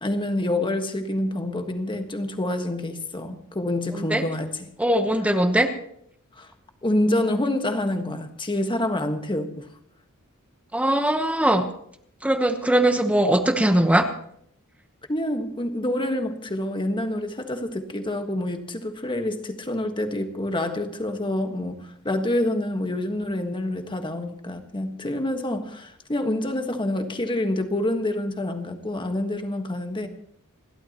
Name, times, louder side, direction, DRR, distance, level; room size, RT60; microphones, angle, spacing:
voice 1, 0.0-4.7 6.4-6.5 6.8-9.7 15.1-30.1, left 1 dB, 20° left, 6 dB, 1.5 m, -27 dB
voice 2, 4.8-5.7 10.7-11.7 12.2-14.1, right 1 dB, 5° right, 6 dB, 1.0 m, -20 dB
29.0 x 12.0 x 3.0 m, 0.69 s
head